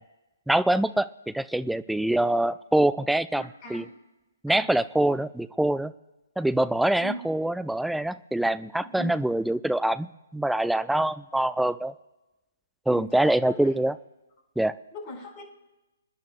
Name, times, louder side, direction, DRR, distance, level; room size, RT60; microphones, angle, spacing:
voice 1, 0.5-3.9 4.4-5.9 6.4-11.9 12.9-13.9 14.6-14.7, right 1 dB, ahead, 15 dB, 0.3 m, -25 dB
voice 2, 3.3-3.9 4.5-4.7 7.0-7.3 8.8-9.2 12.9-13.6 14.9-15.4, left 1 dB, 30° left, 1 dB, 5.4 m, -40 dB
27.5 x 10.5 x 2.4 m, 1.1 s
figure-of-eight pair, 130°, 0 cm